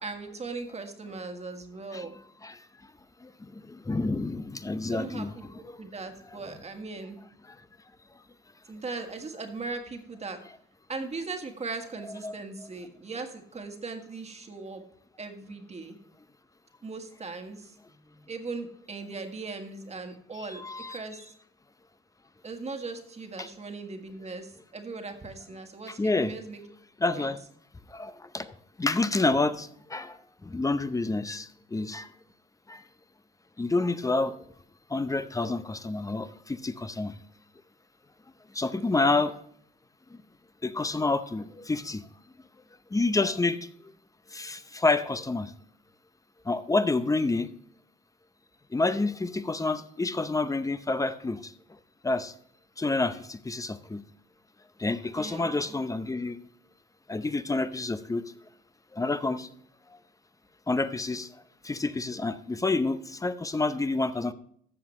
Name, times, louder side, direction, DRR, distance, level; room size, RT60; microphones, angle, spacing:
voice 1, 0.0-2.2 4.9-5.5 5.8-7.2 8.7-10.4 10.9-14.8 15.2-16.0 16.8-21.3 22.4-26.6 27.1-27.3 38.8-39.3 47.2-47.3 55.1-55.7, right 3 dB, 35° right, 5 dB, 1.6 m, -39 dB
voice 2, 3.7-5.3 5.6-5.7 12.2-12.3 20.5-21.0 23.4-23.5 25.9-26.3 27.0-27.4 27.9-28.5 28.8-30.2 30.4-32.1 32.7-32.8 33.6-34.3 34.9-37.1 38.5-39.4 40.6-42.0 42.9-43.6 44.3-45.5 46.5-47.5 48.7-51.5 52.0-52.3 52.8-54.0 54.8-56.4 57.1-58.2 58.9-59.5 60.7-61.3 61.6-64.3, left 3 dB, 15° left, 12 dB, 0.6 m, -28 dB
13.5 x 7.2 x 3.2 m, 0.65 s
cardioid pair, 90°, 20 cm